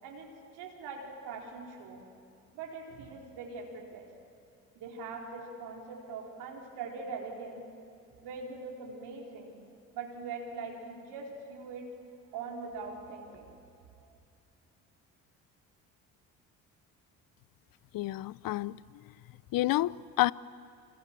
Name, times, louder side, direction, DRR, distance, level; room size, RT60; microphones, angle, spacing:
voice 1, 0.0-2.0 2.5-4.1 4.7-7.6 8.2-9.5 9.9-11.9 12.3-13.5 14.0-14.2, right 4 dB, 70° right, 4.6 m, -42 dB
voice 2, 17.9-18.8 19.5-20.3, left 16 dB, 55° left, 0.7 m, -29 dB
27.5 x 25.5 x 7.6 m
hypercardioid pair, 50°, 41 cm